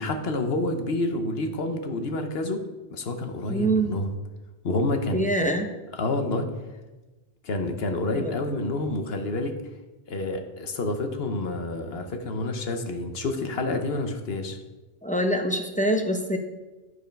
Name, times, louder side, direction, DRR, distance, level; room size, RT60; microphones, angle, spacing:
voice 1, 0.0-2.6 2.9-4.1 4.6-5.2 5.9-6.5 7.4-9.5 10.1-14.6, left 2 dB, 60° left, 6 dB, 1.1 m, -28 dB
voice 2, 3.5-3.9 5.1-5.7 8.1-8.3 15.0-16.4, right 1 dB, 10° left, 4 dB, 0.6 m, -24 dB
11.0 x 4.8 x 5.2 m, 1.2 s
omnidirectional pair, 1.2 m